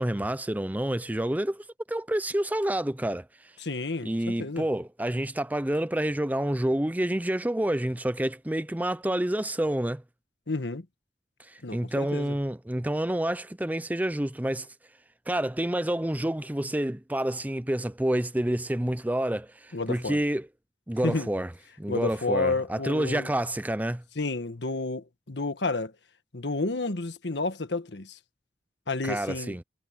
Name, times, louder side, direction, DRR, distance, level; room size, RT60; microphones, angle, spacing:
voice 1, 0.0-3.3 4.0-10.0 11.4-14.7 15.3-20.5 20.9-21.5 21.8-24.0 29.0-29.6, right 1 dB, 10° right, 0.6 m, -28 dB
voice 2, 3.6-4.7 10.5-10.9 11.6-12.4 19.7-20.2 21.0-21.3 21.9-23.3 24.1-25.9 26.3-28.2 28.9-29.5, left 3 dB, 85° left, 1.5 m, -30 dB
head